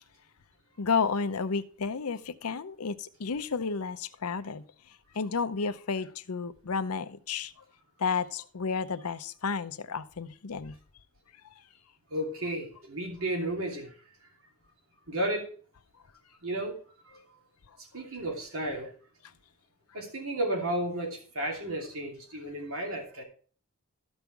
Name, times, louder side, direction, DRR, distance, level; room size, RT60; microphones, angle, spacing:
voice 1, 0.8-4.6 5.1-7.5 8.0-10.7, left 5 dB, 85° left, 12 dB, 0.7 m, -31 dB
voice 2, 12.1-13.9 15.1-15.5 16.4-16.8 17.1-17.2 17.9-18.9 19.9-23.2, right 1 dB, 75° right, 1 dB, 2.8 m, -33 dB
13.5 x 5.5 x 4.5 m, 0.43 s
head